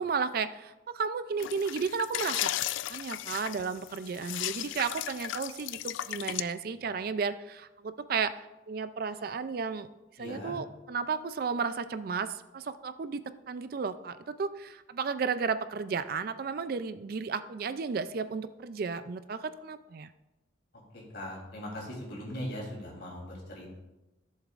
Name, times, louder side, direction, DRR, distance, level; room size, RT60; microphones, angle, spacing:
voice 1, 0.0-2.5 2.9-9.9 10.2-13.2 13.5-20.1, right 5 dB, 50° right, 12 dB, 0.4 m, -33 dB
sound 1, 1.4-6.4, left 13 dB, 80° left, 0.3 m, -35 dB
voice 2, 10.2-10.5 21.1-23.8, left 1 dB, 55° left, -3 dB, 3.3 m, -39 dB
15.0 x 7.3 x 2.5 m, 1.0 s
head